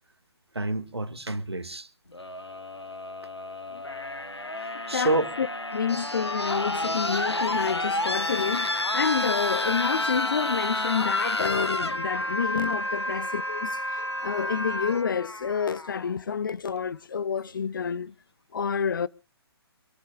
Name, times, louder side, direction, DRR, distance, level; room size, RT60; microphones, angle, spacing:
voice 1, 0.5-1.9 4.6-5.3, right 2 dB, 75° right, 1.7 m, -28 dB
sound 1, 2.1-16.1 17.3-17.4, left 1 dB, 85° left, 1.4 m, -30 dB
voice 2, 4.9-5.5 5.7-18.1 18.5-19.1, left 6 dB, 50° left, 0.6 m, -29 dB
25.5 x 14.0 x 2.3 m
figure-of-eight pair, 135°, 14 cm